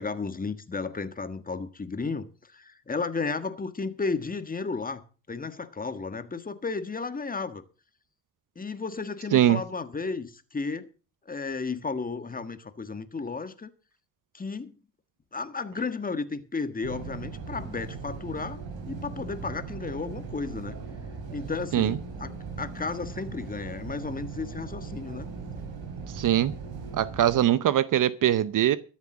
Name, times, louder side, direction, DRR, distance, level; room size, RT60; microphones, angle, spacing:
voice 1, 0.0-7.6 8.5-10.9 11.3-13.7 14.3-14.7 15.3-18.6 18.9-20.8 21.3-25.3, left 4 dB, 20° left, 1.6 m, -33 dB
sound 1, 16.8-27.4, right 5 dB, 70° right, 3.4 m, -39 dB
voice 2, 26.1-26.5 27.0-28.8, right 11 dB, 55° right, 0.8 m, -22 dB
13.5 x 7.3 x 7.4 m
cardioid pair, 95°, 38 cm